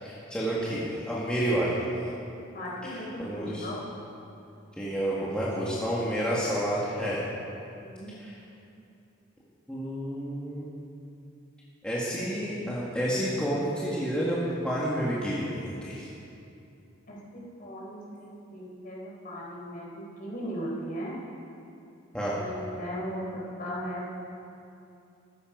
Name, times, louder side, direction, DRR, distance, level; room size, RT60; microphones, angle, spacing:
voice 1, 0.0-1.7 3.2-3.7 4.8-7.2 8.2-8.3 9.7-10.7 11.8-16.1 22.1-22.4, equal, 5° left, -8 dB, 1.9 m, -29 dB
voice 2, 2.5-3.8 7.8-8.1 17.1-21.2 22.3-24.1, equal, 45° left, -4 dB, 4.4 m, -37 dB
14.5 x 14.0 x 5.3 m, 2.7 s
head